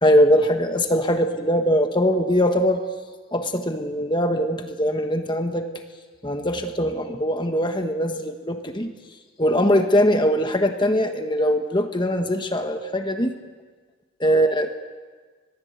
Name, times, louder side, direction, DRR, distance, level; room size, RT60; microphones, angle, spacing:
voice 1, 0.0-2.8 3.3-5.7 6.2-8.9 9.4-13.4 14.2-14.7, equal, 25° left, 6 dB, 1.3 m, -21 dB
25.5 x 21.5 x 8.1 m, 1.5 s
head